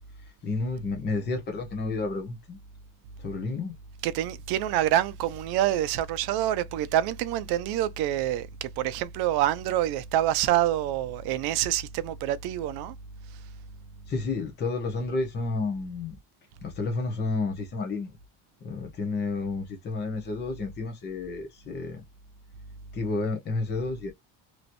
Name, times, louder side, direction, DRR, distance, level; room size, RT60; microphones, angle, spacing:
voice 1, 0.2-2.6 3.2-3.8 14.1-16.2 16.6-18.2 18.6-22.0 22.9-24.1, left 3 dB, 25° left, 0.9 m, -31 dB
voice 2, 4.0-12.9, right 12 dB, 70° right, 0.6 m, -26 dB
3.1 x 2.8 x 2.5 m
cardioid pair, 175°, 40 cm